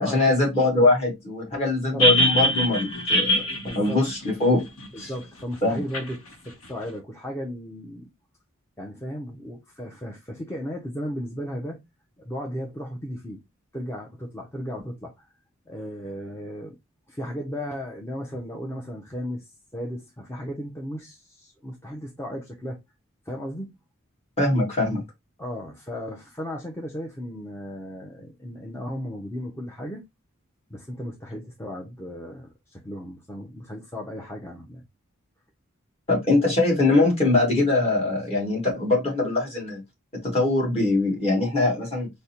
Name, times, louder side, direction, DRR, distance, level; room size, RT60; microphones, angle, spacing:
voice 1, 0.0-3.4 3.8-4.6 5.0-5.1 5.6-5.8 24.4-25.0 36.1-39.8 40.2-42.1, left 2 dB, 30° left, 1.7 m, -22 dB
sound 1, 2.0-5.0 5.9-6.0, equal, 85° left, 0.8 m, -23 dB
voice 2, 3.6-4.0 5.1-6.2 6.4-8.1 8.8-11.8 12.2-13.4 13.7-15.2 15.7-16.8 17.1-22.8 23.3-23.7 25.4-30.0 30.7-34.8, equal, 10° left, 0.5 m, -35 dB
5.0 x 2.1 x 2.8 m
head